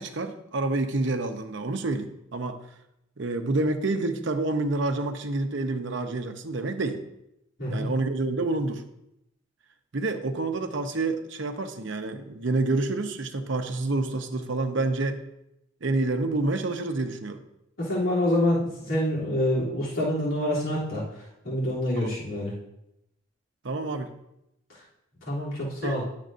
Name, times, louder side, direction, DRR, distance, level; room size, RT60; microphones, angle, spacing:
voice 1, 0.0-2.6 3.2-7.0 7.7-8.8 9.9-15.2 15.8-17.4 22.0-22.1 23.6-24.1 25.8-25.9, right 2 dB, 60° right, 7 dB, 0.7 m, -28 dB
voice 2, 17.8-22.5 24.7-24.8 25.2-26.0, left 1 dB, 80° left, -8 dB, 2.9 m, -27 dB
10.5 x 7.5 x 2.5 m, 0.83 s
head